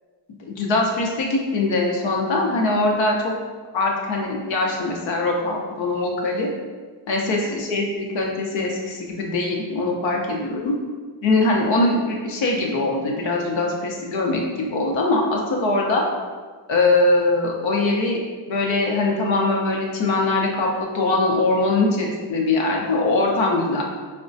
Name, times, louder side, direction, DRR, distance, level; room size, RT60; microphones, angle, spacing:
voice 1, 0.4-3.3 3.7-6.5 7.1-10.7 11.2-16.0 16.7-18.2 18.5-23.8, left 2 dB, 85° left, 0 dB, 0.7 m, -22 dB
4.3 x 2.2 x 2.5 m, 1.5 s
cardioid pair, 70°, 45 cm